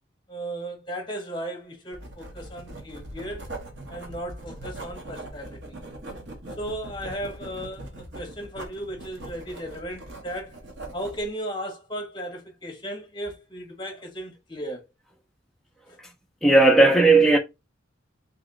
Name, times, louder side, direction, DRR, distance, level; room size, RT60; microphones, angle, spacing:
voice 1, 0.3-3.5 3.9-5.8 6.6-10.6 10.9-14.9 15.9-16.0, right 1 dB, 25° left, 0.9 m, -36 dB
Writing, 1.9-11.3, right 1 dB, 60° right, 1.0 m, -41 dB
voice 2, 16.4-17.4, right 2 dB, ahead, 0.4 m, -15 dB
2.8 x 2.8 x 3.7 m
head